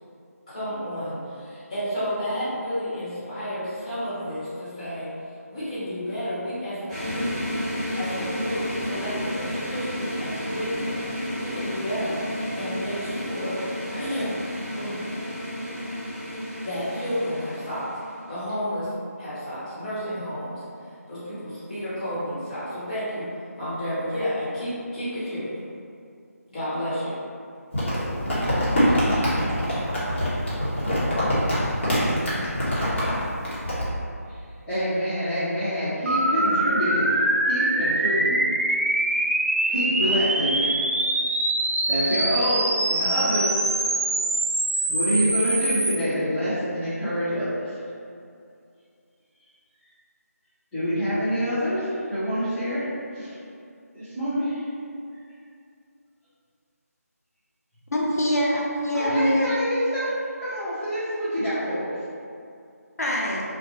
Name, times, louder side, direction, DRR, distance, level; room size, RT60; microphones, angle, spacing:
voice 1, 0.5-5.1 5.5-7.5 7.9-14.3 14.7-15.0 16.6-17.9 18.3-18.9 19.2-23.3 23.5-25.6 26.5-27.1, equal, 25° left, -13 dB, 1.1 m, -31 dB
sound 1, 6.9-18.2, equal, 25° right, 1.4 m, -32 dB
Crumpling crinkling, 27.7-33.8, equal, 45° left, 0.9 m, -24 dB
voice 2, 34.7-37.2 37.5-38.4 39.7-40.8 41.9-43.6 44.9-47.8 50.7-52.8 53.1-53.3 53.9-54.6 58.9-60.1 60.4-61.9, equal, 5° left, -22 dB, 0.4 m, -26 dB
sound 2, 36.1-46.0, right 2 dB, 60° right, 0.4 m, -24 dB
voice 3, 57.9-59.5 63.0-63.4, equal, 75° left, -3 dB, 0.5 m, -24 dB
2.8 x 2.2 x 2.8 m, 2.5 s
figure-of-eight pair, 165°, 9 cm